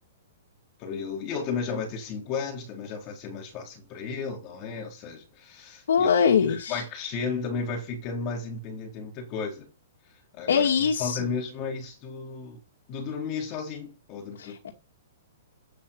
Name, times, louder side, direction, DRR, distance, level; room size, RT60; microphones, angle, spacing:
voice 1, 0.8-6.1 6.4-9.7 10.3-10.7 11.0-12.6 12.9-14.7, left 5 dB, 30° left, 4.0 m, -34 dB
voice 2, 5.9-6.8 10.5-11.3 14.4-14.7, left 6 dB, 75° left, 2.4 m, -23 dB
9.2 x 9.0 x 5.7 m
hypercardioid pair, 165°, 0 cm